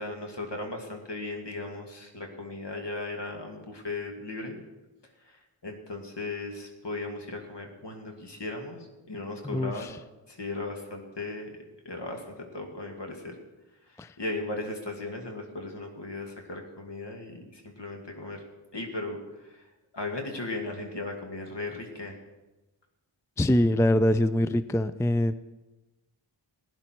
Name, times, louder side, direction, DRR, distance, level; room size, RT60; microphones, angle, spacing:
voice 1, 0.0-4.6 5.3-10.0 10.3-11.5 11.8-13.4 13.9-18.4 18.7-19.7 19.9-22.2, left 2 dB, 60° left, 2 dB, 2.3 m, -37 dB
voice 2, 9.4-9.9 14.0-14.1 23.4-25.3, left 1 dB, 5° left, 13 dB, 0.4 m, -24 dB
16.5 x 10.5 x 4.6 m, 1.1 s
wide cardioid pair, 50°, 47 cm